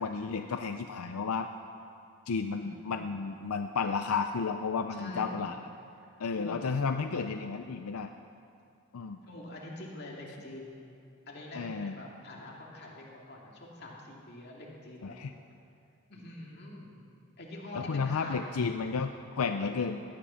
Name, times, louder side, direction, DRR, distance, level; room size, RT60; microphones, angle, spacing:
voice 1, 0.0-1.5 2.3-5.6 6.2-8.1 8.9-9.2 11.5-12.0 15.0-15.3 17.7-20.0, left 5 dB, 80° left, 7 dB, 0.5 m, -32 dB
voice 2, 2.5-3.1 4.9-5.4 6.0-6.6 9.2-10.8 11.3-15.2 16.1-17.0 17.4-18.6 19.6-20.0, left 1 dB, 45° left, -3 dB, 2.5 m, -45 dB
17.0 x 11.0 x 5.7 m, 2.5 s
head